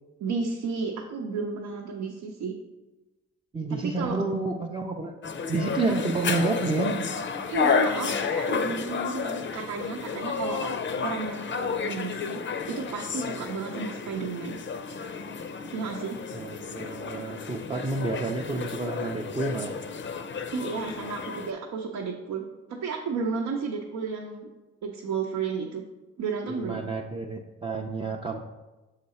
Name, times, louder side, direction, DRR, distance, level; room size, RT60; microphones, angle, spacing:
voice 1, 0.2-2.6 3.8-4.2 5.8-5.9 7.5-10.7 11.0-12.4 12.7-14.6 15.7-16.2 20.5-22.4 22.7-24.5 24.8-25.8 26.2-26.8, right 5 dB, 75° right, -1 dB, 0.8 m, -32 dB
voice 2, 3.5-5.1 5.5-7.1 16.3-19.7 26.6-28.4, right 3 dB, 15° right, -1 dB, 0.5 m, -30 dB
sound 1, 5.2-21.5, left 5 dB, 40° left, 0.5 m, -31 dB
6.6 x 3.8 x 4.2 m, 1.1 s
cardioid pair, 90°, 30 cm